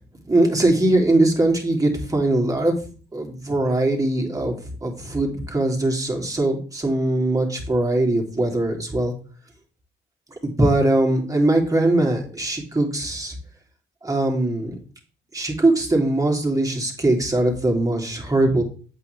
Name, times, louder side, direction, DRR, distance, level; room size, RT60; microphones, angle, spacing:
voice 1, 0.3-2.8 3.1-9.1 10.4-13.3 14.0-14.8 15.3-18.6, right 2 dB, 15° right, 0 dB, 2.9 m, -21 dB
8.5 x 8.4 x 3.3 m, 0.39 s
cardioid pair, 90°, 20 cm